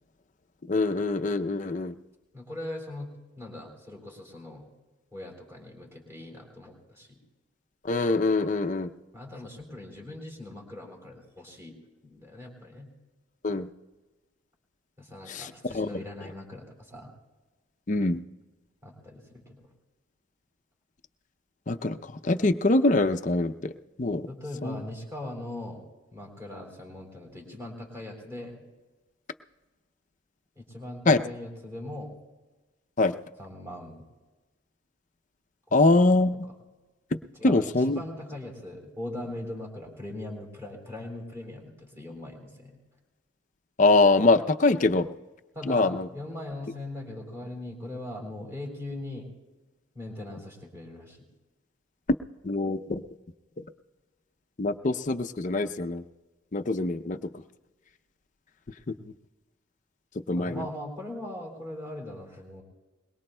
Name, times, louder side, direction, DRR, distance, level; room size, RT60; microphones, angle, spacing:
voice 1, 0.6-2.0 7.8-8.9 13.4-13.7 15.3-16.3 17.9-18.2 21.7-24.3 24.6-24.8 31.1-31.2 33.0-33.2 35.7-36.3 37.1-38.0 43.8-45.1 45.6-46.1 52.4-53.0 53.6-53.7 54.6-56.0 56.5-57.4 58.7-59.1 60.1-60.7, left 2 dB, 35° left, 7 dB, 0.5 m, -24 dB
voice 2, 2.3-4.6 5.1-7.2 9.1-11.8 12.0-12.9 15.0-17.1 18.8-19.7 24.3-25.8 26.1-28.6 30.5-32.1 33.4-34.1 35.7-36.2 37.4-37.7 37.9-42.8 45.5-49.3 49.9-51.3 60.4-62.6, left 1 dB, 15° right, 1 dB, 3.4 m, -40 dB
22.5 x 21.0 x 2.2 m, 1.2 s
head